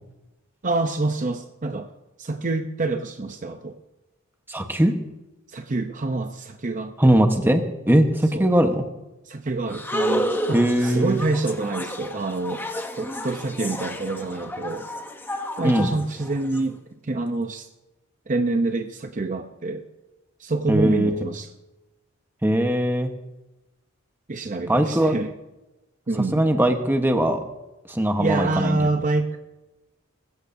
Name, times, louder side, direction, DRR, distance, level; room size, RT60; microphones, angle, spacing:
voice 1, 0.6-1.9 2.2-3.8 5.5-7.1 8.3-8.5 9.2-12.6 12.9-14.9 15.6-16.8 17.0-17.7 18.3-19.9 20.4-21.5 24.3-25.3 26.1-26.5 28.2-29.4, right 2 dB, 35° right, 6 dB, 0.7 m, -27 dB
voice 2, 4.5-4.9 7.0-8.8 10.5-11.2 15.6-15.9 20.7-21.2 22.4-23.1 24.7-25.2 26.3-27.4 27.9-28.8, right 1 dB, 10° right, 5 dB, 1.0 m, -20 dB
sound 1, 9.7-16.6, equal, 10° left, 0.8 m, -31 dB
20.0 x 15.0 x 2.7 m, 1.0 s
head